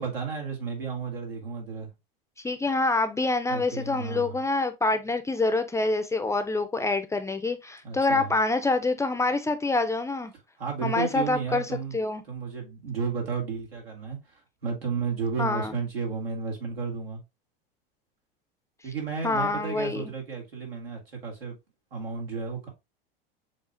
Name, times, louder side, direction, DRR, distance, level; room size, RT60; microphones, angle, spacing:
voice 1, 0.0-1.9 3.5-4.4 7.8-8.3 10.6-12.0 12.3-17.2 18.8-21.6 21.9-22.7, right 5 dB, 90° right, 1.9 m, -33 dB
voice 2, 2.4-10.3 10.8-11.7 11.9-12.2 15.4-15.7 19.2-20.1, left 3 dB, 10° left, 0.4 m, -26 dB
7.1 x 2.4 x 2.5 m
hypercardioid pair, 90°, 29 cm